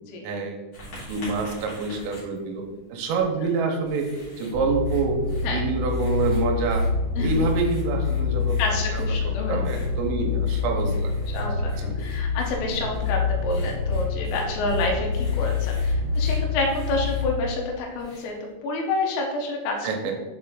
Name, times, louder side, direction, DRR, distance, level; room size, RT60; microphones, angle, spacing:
voice 1, 0.2-0.6 1.1-4.1 4.4-6.9 7.2-8.6 8.9-9.1 9.5-11.1 11.8-12.0 19.8-20.1, right 4 dB, 90° right, 2 dB, 3.3 m, -27 dB
Writing, 0.7-18.5, equal, 45° left, 1.6 m, -45 dB
sound 1, 4.5-17.3, left 4 dB, 65° right, 0.8 m, -26 dB
voice 2, 8.6-9.6 11.3-19.9, left 2 dB, 85° left, 0 dB, 3.5 m, -28 dB
7.5 x 4.4 x 3.7 m, 1.1 s
omnidirectional pair, 5.9 m